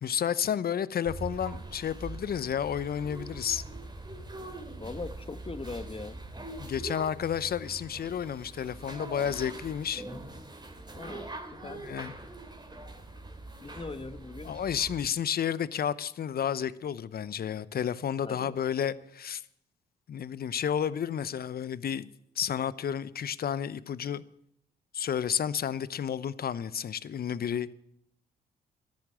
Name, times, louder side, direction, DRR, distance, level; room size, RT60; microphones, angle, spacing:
voice 1, 0.0-3.6 6.6-10.0 11.6-12.1 14.4-19.4 20.1-22.1 22.4-24.2 24.9-27.7, left 8 dB, 55° left, 0.8 m, -31 dB
sound 1, 1.0-15.1, right 2 dB, 25° right, 3.0 m, -43 dB
voice 2, 4.8-6.2 10.1-10.2 10.9-11.9 13.6-14.6 18.2-18.7, left 3 dB, 30° left, 1.5 m, -41 dB
14.0 x 11.0 x 7.7 m
supercardioid pair, 50°, 18 cm